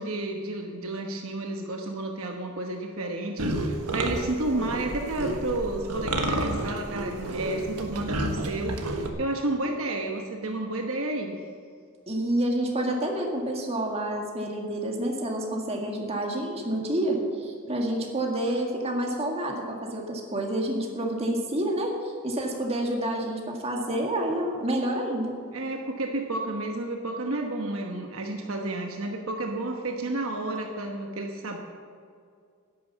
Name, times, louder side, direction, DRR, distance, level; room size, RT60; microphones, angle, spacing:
voice 1, 0.0-11.4 25.5-31.6, right 2 dB, 65° right, 2 dB, 1.1 m, -31 dB
sound 1, 3.4-9.1, right 1 dB, 90° right, 1.4 m, -30 dB
voice 2, 12.1-25.3, right 1 dB, 25° right, 0 dB, 1.8 m, -28 dB
11.0 x 9.3 x 7.3 m, 2.3 s
head